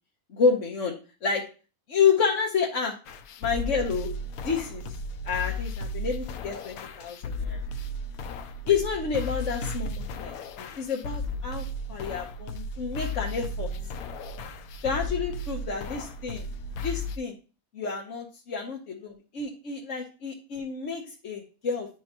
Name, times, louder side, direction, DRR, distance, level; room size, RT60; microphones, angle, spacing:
voice 1, 0.3-1.4 1.9-3.0 3.4-4.1 4.4-4.9 5.2-7.6 8.7-13.7 14.8-16.5 16.8-17.4 17.7-21.9, left 5 dB, 60° left, -1 dB, 1.3 m, -29 dB
sound 1, 3.1-17.2, left 2 dB, 85° left, 1.1 m, -35 dB
11.0 x 4.4 x 2.9 m, 0.35 s
omnidirectional pair, 1.5 m